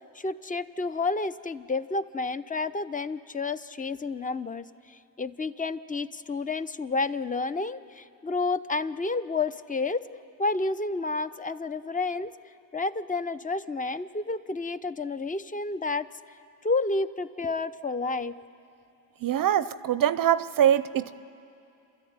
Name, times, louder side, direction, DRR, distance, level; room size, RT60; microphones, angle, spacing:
voice 1, 0.1-10.0 10.4-12.3 12.7-16.1 16.6-18.3, left 3 dB, 15° left, 14 dB, 0.6 m, -30 dB
voice 2, 19.2-21.2, right 10 dB, 45° right, 15 dB, 0.6 m, -23 dB
28.5 x 13.0 x 9.5 m, 2.7 s
supercardioid pair, 75°, 49 cm